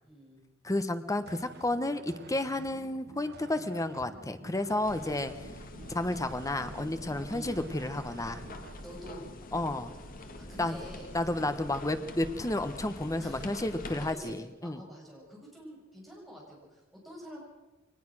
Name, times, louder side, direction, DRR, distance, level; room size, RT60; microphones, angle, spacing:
voice 1, 0.0-0.4 5.0-5.3 7.3-7.6 8.8-9.2 10.5-11.1 13.2-13.5 13.8-14.3 14.6-17.4, equal, ahead, -3 dB, 7.1 m, -47 dB
voice 2, 0.6-5.3 5.9-8.4 9.5-10.0 10.6-10.8 11.1-14.8, left 1 dB, 15° left, 10 dB, 1.1 m, -31 dB
sound 1, 1.2-8.8, right 3 dB, 55° right, 1.1 m, -50 dB
sound 2, 4.8-14.1, left 1 dB, 45° left, 1.9 m, -45 dB
22.5 x 19.5 x 6.3 m, 1.1 s
head